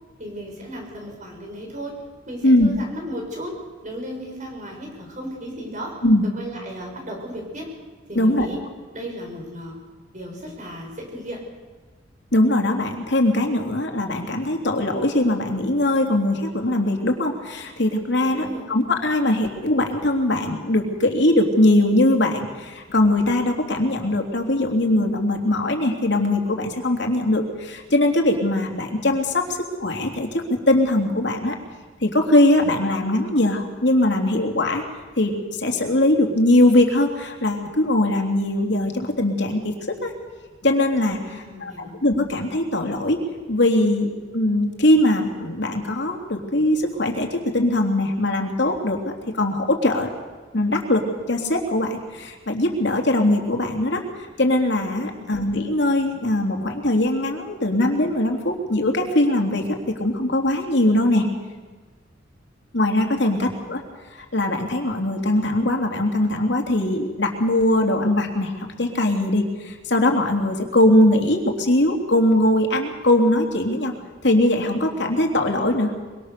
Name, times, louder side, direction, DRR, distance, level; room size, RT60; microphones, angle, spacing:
voice 1, 0.2-1.9 2.3-3.5 3.8-5.9 6.3-7.7 8.1-8.6 8.9-9.8 10.1-11.4 18.2-18.6 41.2-41.9 55.1-55.4 63.3-63.5, equal, 40° right, 1 dB, 6.7 m, -35 dB
voice 2, 8.1-8.5 12.3-31.5 32.0-34.8 35.2-40.1 40.6-41.7 42.0-43.2 43.5-50.1 50.5-61.3 62.7-63.8 64.1-73.9 74.2-76.0, left 1 dB, 65° left, 3 dB, 3.2 m, -21 dB
24.5 x 24.0 x 6.8 m, 1.4 s
head